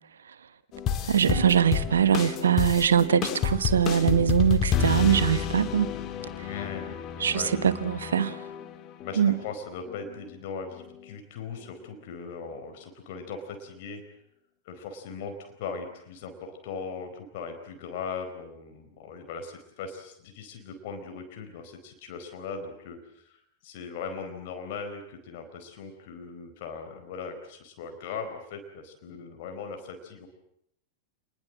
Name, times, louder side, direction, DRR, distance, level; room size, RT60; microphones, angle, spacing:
sound 1, 0.7-9.5 9.9-10.4 10.7-11.2 11.6-11.7, left 8 dB, 35° left, 2.0 m, -31 dB
voice 1, 1.1-5.9 6.4-6.5 7.2-8.4 9.2-9.4, right 8 dB, 70° right, 1.3 m, -22 dB
voice 2, 6.4-7.0 7.3-7.5 9.0-14.0 14.6-30.3, left 5 dB, 50° left, 4.6 m, -39 dB
28.0 x 21.0 x 7.7 m
figure-of-eight pair, 90°, 0 cm